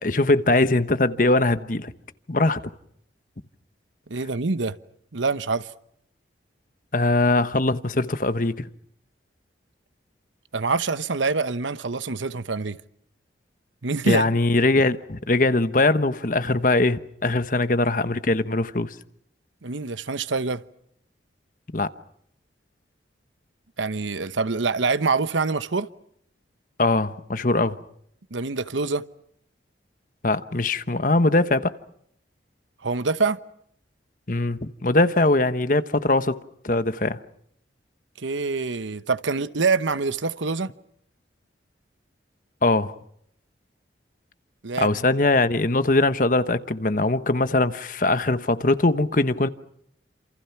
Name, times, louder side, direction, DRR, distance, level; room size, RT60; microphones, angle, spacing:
voice 1, 0.0-1.9 2.3-2.6 6.9-8.7 14.0-18.9 21.7-21.9 26.8-27.8 30.2-31.7 34.3-36.4 36.6-37.2 42.6-42.9 44.8-49.5, left 2 dB, 45° left, 1.1 m, -21 dB
voice 2, 4.1-4.7 5.1-5.7 10.5-12.8 13.8-14.3 19.6-20.6 23.8-25.9 28.3-29.0 32.8-33.4 38.2-40.7 44.6-44.9, right 4 dB, 90° right, 1.0 m, -25 dB
28.5 x 28.0 x 5.9 m
head